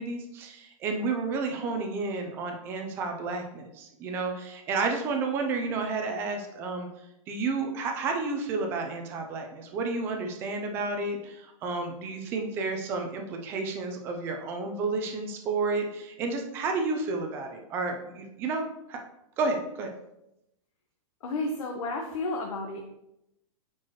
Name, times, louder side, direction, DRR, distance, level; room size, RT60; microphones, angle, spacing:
voice 1, 0.0-6.9 7.3-18.6 18.9-19.0 19.4-19.9, right 3 dB, 15° right, 4 dB, 0.4 m, -31 dB
voice 2, 21.2-22.8, left 2 dB, 70° left, 1 dB, 1.0 m, -32 dB
8.8 x 4.5 x 3.0 m, 0.85 s
supercardioid pair, 180°, 18 cm